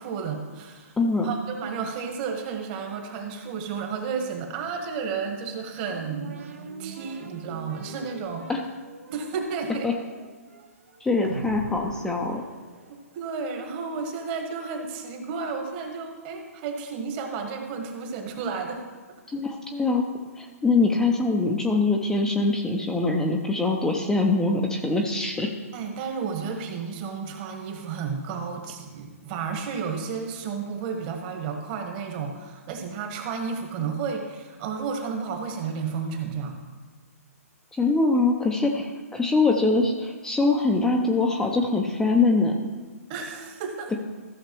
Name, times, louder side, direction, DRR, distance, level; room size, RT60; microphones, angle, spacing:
voice 1, 0.0-1.0 1.2-6.4 6.8-8.4 9.1-9.9 12.9-18.8 25.7-36.6 38.7-38.8 43.1-43.9, right 5 dB, 35° right, 3 dB, 1.5 m, -32 dB
voice 2, 1.0-1.3 8.5-8.6 9.8-9.9 11.0-12.4 19.3-20.1 20.4-25.5 37.7-42.7, left 3 dB, 5° left, 1 dB, 0.6 m, -23 dB
sound 1, 5.8-13.3, right 4 dB, 60° right, 1.0 m, -41 dB
15.0 x 6.6 x 3.1 m, 1.4 s
figure-of-eight pair, 130°, 8 cm